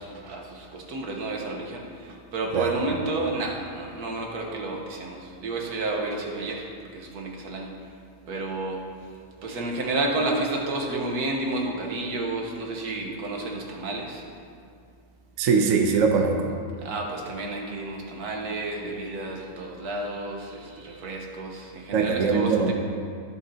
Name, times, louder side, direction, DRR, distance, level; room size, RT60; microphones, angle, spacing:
voice 1, 0.0-6.7 6.9-7.7 8.3-8.8 9.4-14.2 16.8-22.7, right 2 dB, 75° right, 0 dB, 1.7 m, -31 dB
voice 2, 15.4-16.5 21.9-22.7, right 5 dB, 60° right, 3 dB, 1.1 m, -21 dB
18.5 x 6.9 x 2.8 m, 2.3 s
omnidirectional pair, 1.6 m